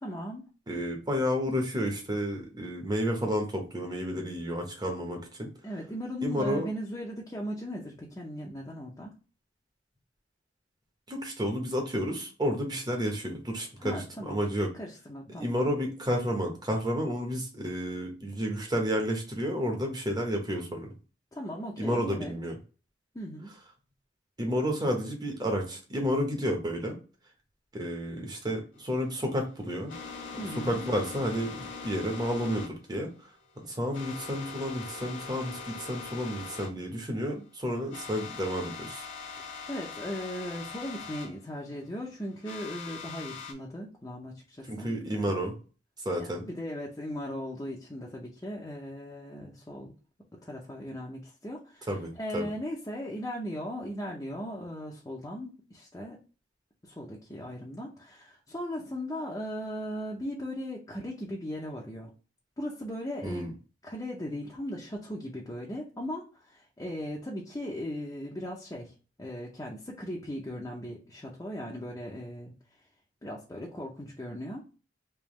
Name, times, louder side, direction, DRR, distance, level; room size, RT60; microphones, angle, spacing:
voice 1, 0.0-0.5 5.6-9.1 13.8-14.4 14.8-15.5 21.3-22.3 23.1-23.5 30.4-30.9 39.7-45.3 46.4-49.9 50.4-51.9 52.2-56.2 56.8-62.1 62.6-63.4 63.8-68.9 69.2-72.5 73.2-74.7, equal, 20° left, -2 dB, 0.6 m, -38 dB
voice 2, 0.7-5.5 6.2-6.7 11.1-14.7 15.4-20.9 21.8-22.6 24.4-27.0 27.7-29.9 30.6-33.1 33.6-39.0 44.6-45.6 46.0-46.4 51.9-52.5 63.2-63.5, equal, 20° right, 2 dB, 0.9 m, -31 dB
sound 1, 28.8-36.7 37.0-37.1 37.5-37.6 37.9-41.3 42.4-43.5, left 5 dB, 90° left, 1.0 m, -42 dB
3.5 x 2.9 x 3.0 m, 0.35 s
head